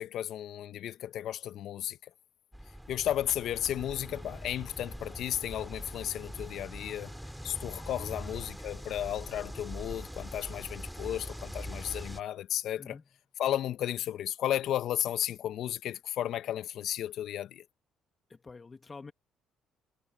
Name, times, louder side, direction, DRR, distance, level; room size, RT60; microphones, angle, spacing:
voice 1, 0.0-2.0 2.9-7.1 7.4-13.0 13.4-17.6, left 11 dB, 65° left, 1.3 m, -34 dB
sound 1, 2.5-12.2, equal, 5° right, 3.7 m, -43 dB
voice 2, 18.3-19.1, left 4 dB, 30° left, 2.3 m, -47 dB
hypercardioid pair, 55°, 0 cm